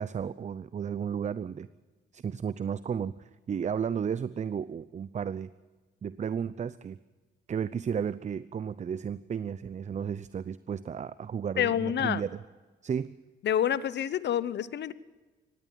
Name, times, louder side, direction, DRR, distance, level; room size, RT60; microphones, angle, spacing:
voice 1, 0.0-1.7 2.1-5.5 6.0-7.0 7.5-12.4 12.8-13.2, right 7 dB, 35° right, 17 dB, 0.6 m, -33 dB
voice 2, 11.6-12.2 13.4-14.9, left 10 dB, 60° left, 18 dB, 0.9 m, -28 dB
18.0 x 15.0 x 9.4 m, 1.3 s
cardioid pair, 90°, 20 cm